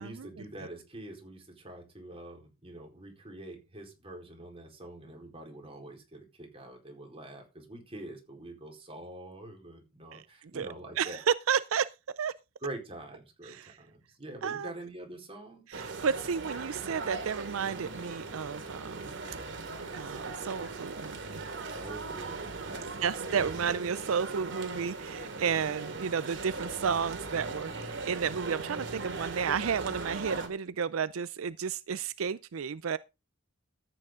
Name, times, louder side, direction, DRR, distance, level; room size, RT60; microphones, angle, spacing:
voice 1, 0.0-11.2 12.6-15.8 21.7-23.1, right 1 dB, 30° right, 4.3 m, -45 dB
voice 2, 11.0-11.9 12.2-12.3 13.5-13.7 14.4-14.7 15.7-19.1 19.9-21.4 23.0-33.0, right 6 dB, 85° right, 0.5 m, -32 dB
sound 1, 15.7-30.5, right 3 dB, 65° right, 2.5 m, -39 dB
13.5 x 9.2 x 3.8 m
head